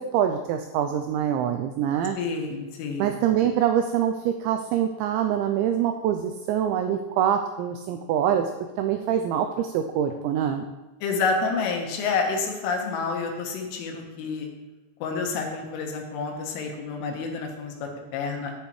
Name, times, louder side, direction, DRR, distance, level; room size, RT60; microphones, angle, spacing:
voice 1, 0.1-2.2 3.0-8.5 8.8-10.7, right 9 dB, 90° right, 5 dB, 2.6 m, -25 dB
voice 2, 2.2-3.1 11.0-14.5 15.0-18.5, left 4 dB, 80° left, 2 dB, 3.6 m, -29 dB
10.0 x 9.6 x 3.1 m, 1.1 s
omnidirectional pair, 5.8 m